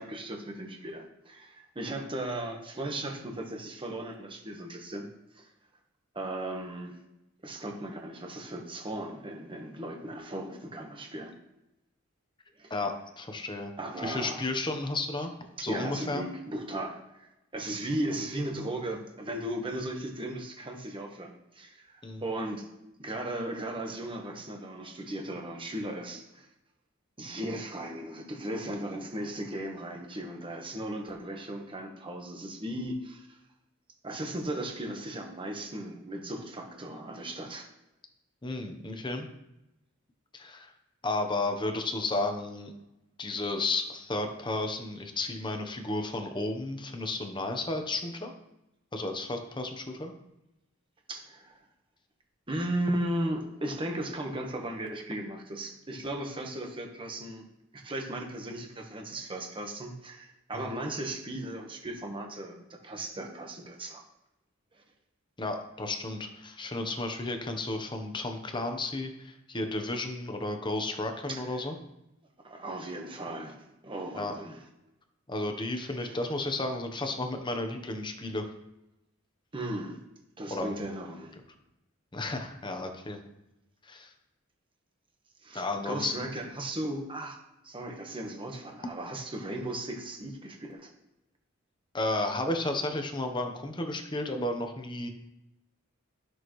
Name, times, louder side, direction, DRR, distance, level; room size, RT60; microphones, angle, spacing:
voice 1, 0.0-5.1 5.3-5.5 6.1-7.0 7.4-11.3 12.6-12.7 13.8-14.4 15.6-22.7 23.0-26.5 27.2-33.4 34.0-37.7 51.1-51.6 52.5-57.5 57.7-64.0 71.3-71.6 72.4-73.6 73.8-74.6 76.0-76.1 79.5-80.0 80.4-81.3 85.4-87.4 87.6-90.9, right 1 dB, 25° right, 2 dB, 1.3 m, -36 dB
voice 2, 12.7-13.7 14.0-15.3 15.6-16.2 22.0-22.2 38.4-39.3 40.3-40.7 41.0-42.7 43.2-48.3 48.9-50.1 60.5-60.7 65.4-71.7 74.1-74.3 75.3-78.5 80.5-80.8 82.1-83.2 83.8-84.1 85.5-86.3 88.8-88.9 91.9-95.1, left 2 dB, 25° left, 5 dB, 1.0 m, -33 dB
13.5 x 6.4 x 3.2 m, 0.92 s
head